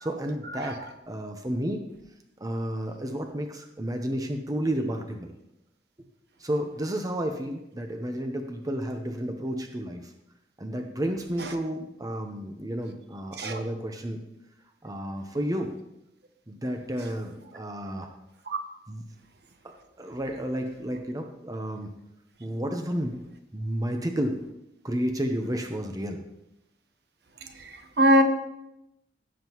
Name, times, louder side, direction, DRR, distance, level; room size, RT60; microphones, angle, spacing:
voice 1, 0.0-0.8 1.1-1.8 2.4-5.3 6.4-10.1 10.6-14.2 14.8-15.7 16.5-18.1 18.9-19.0 19.6-21.9 22.4-23.2 23.5-24.4 24.8-26.2, equal, 20° right, 4 dB, 0.8 m, -31 dB
voice 2, 0.6-0.7 13.4-13.6 18.5-18.6 28.0-28.2, equal, 65° right, 6 dB, 1.1 m, -20 dB
16.0 x 7.5 x 3.0 m, 0.87 s
head